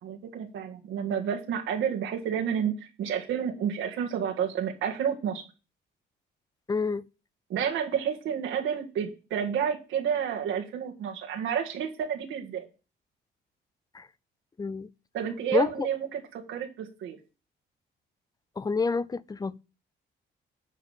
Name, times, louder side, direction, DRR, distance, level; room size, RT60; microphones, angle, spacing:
voice 1, 0.0-5.4 7.5-12.7 15.1-17.2, right 8 dB, 80° right, 1.9 m, -30 dB
voice 2, 6.7-7.0 13.9-14.1 14.6-14.9 15.5-15.9 18.6-19.6, left 4 dB, 20° left, 0.5 m, -28 dB
10.0 x 3.9 x 7.3 m
cardioid pair, 90°, 20 cm